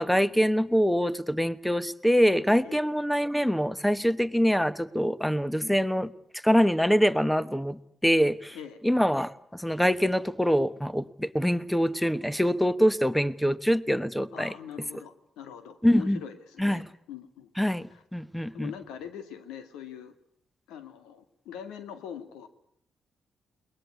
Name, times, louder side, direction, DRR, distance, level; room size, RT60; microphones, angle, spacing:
voice 1, 0.0-6.1 6.4-8.6 8.8-14.5 15.8-16.2 16.6-16.9 17.6-18.7, equal, 5° left, 16 dB, 1.2 m, -24 dB
voice 2, 14.3-17.5 17.9-18.0 18.5-20.1 20.7-22.5, left 8 dB, 90° left, 10 dB, 2.1 m, -42 dB
22.0 x 20.0 x 9.6 m, 0.69 s
supercardioid pair, 55°, 0 cm